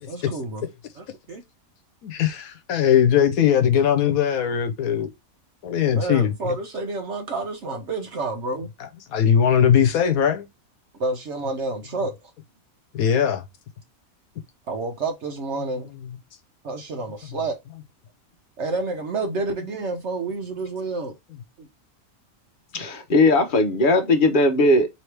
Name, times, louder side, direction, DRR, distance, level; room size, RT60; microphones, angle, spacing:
voice 1, 0.1-0.7 1.0-1.4 6.0-8.7 11.0-12.1 14.7-15.9 16.6-17.6 18.6-21.1, right 3 dB, 60° right, 1.0 m, -29 dB
voice 2, 2.0-5.1 5.6-6.5 8.8-10.5 12.9-13.4 15.8-15.9, left 8 dB, 80° left, 1.1 m, -20 dB
voice 3, 22.7-24.9, left 2 dB, 40° left, 0.9 m, -18 dB
4.7 x 3.0 x 3.2 m
omnidirectional pair, 1.5 m